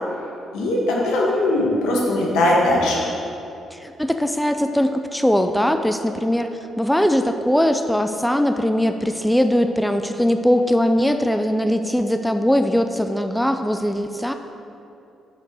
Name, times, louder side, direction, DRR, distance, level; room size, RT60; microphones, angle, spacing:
voice 1, 0.5-3.0, left 1 dB, 90° left, -3 dB, 1.6 m, -19 dB
voice 2, 3.7-14.3, equal, 5° left, 7 dB, 0.4 m, -20 dB
6.8 x 6.5 x 4.7 m, 2.6 s
cardioid pair, 90°, 0 cm